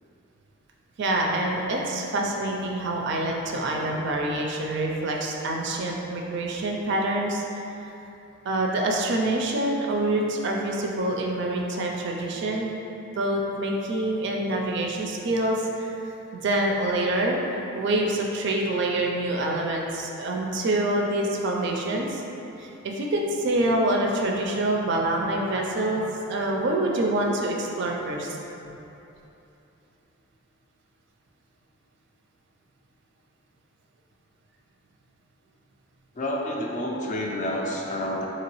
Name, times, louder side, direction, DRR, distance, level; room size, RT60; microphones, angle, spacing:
voice 1, 1.0-7.4 8.5-12.7 13.1-22.2 22.6-28.4, right 1 dB, 55° right, 0 dB, 0.4 m, -26 dB
voice 2, 36.2-38.3, left 1 dB, 35° left, -1 dB, 0.4 m, -29 dB
3.8 x 2.9 x 3.0 m, 2.9 s
head